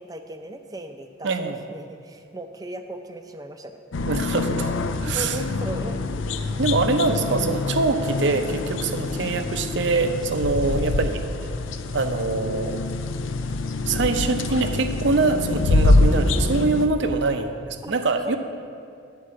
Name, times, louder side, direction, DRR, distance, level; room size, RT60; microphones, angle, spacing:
voice 1, 0.0-3.8 5.0-6.0 6.9-7.5 17.8-17.9 18.2-18.4, right 1 dB, 20° right, 7 dB, 0.4 m, -37 dB
voice 2, 1.2-1.6 4.1-4.7 5.0-5.4 6.6-11.2 11.9-12.8 13.9-18.4, right 3 dB, 65° right, 7 dB, 0.6 m, -24 dB
sound 1, 3.9-16.9, left 2 dB, 80° left, 0.5 m, -25 dB
9.9 x 4.6 x 7.5 m, 2.4 s
head